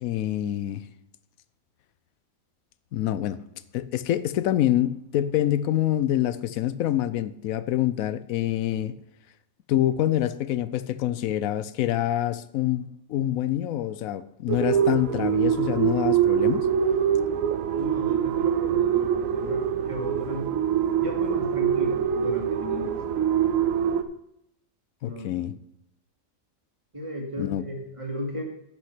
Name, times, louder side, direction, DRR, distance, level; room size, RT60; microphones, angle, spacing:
voice 1, 0.0-0.8 2.9-3.4 3.7-8.9 9.7-16.7 25.0-25.5 27.4-27.6, left 12 dB, 85° left, 1.0 m, -26 dB
sound 1, 14.5-24.0, right 9 dB, 75° right, 1.1 m, -24 dB
voice 2, 17.7-19.6 19.9-20.5 21.0-23.0 25.0-25.5 26.9-28.4, left 1 dB, 25° right, 2.1 m, -35 dB
10.5 x 6.1 x 5.9 m
omnidirectional pair, 1.4 m